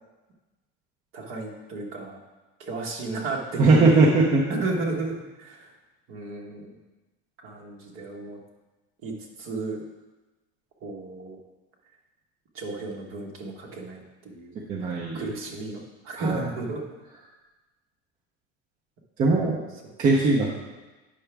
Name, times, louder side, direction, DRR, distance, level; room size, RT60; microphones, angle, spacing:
voice 1, 1.1-2.2 2.6-4.1 4.5-5.7 6.1-6.7 7.4-8.4 9.0-9.8 10.8-11.4 12.5-14.0 14.2-14.5 14.8-16.8 19.8-19.9, right 3 dB, 45° right, 0 dB, 1.3 m, -33 dB
voice 2, 3.6-4.4 14.7-15.2 16.2-16.5 19.2-19.6 20.0-20.5, right 3 dB, 25° right, -3 dB, 0.7 m, -20 dB
8.4 x 5.9 x 3.4 m, 1.2 s
cardioid pair, 175°, 29 cm